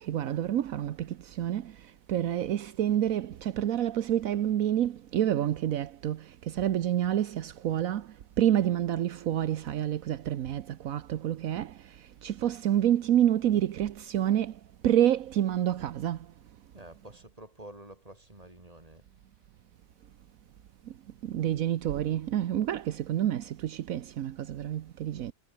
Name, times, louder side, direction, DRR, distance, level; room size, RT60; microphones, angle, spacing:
voice 1, 0.0-1.7 2.1-8.1 8.4-11.7 12.2-14.5 14.8-16.2 21.2-25.3, right 11 dB, 80° right, 1.2 m, -28 dB
voice 2, 16.7-19.1, right 1 dB, 25° right, 5.0 m, -49 dB
omnidirectional pair, 1.4 m